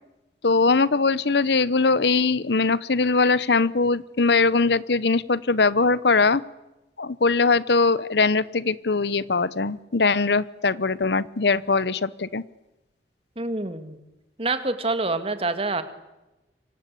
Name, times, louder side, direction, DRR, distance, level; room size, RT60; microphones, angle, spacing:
voice 1, 0.4-6.4 7.0-12.4, left 4 dB, 65° left, 19 dB, 0.9 m, -21 dB
voice 2, 13.4-14.0 14.4-15.8, right 3 dB, 30° right, 10 dB, 2.3 m, -26 dB
27.0 x 25.5 x 8.5 m, 1.0 s
head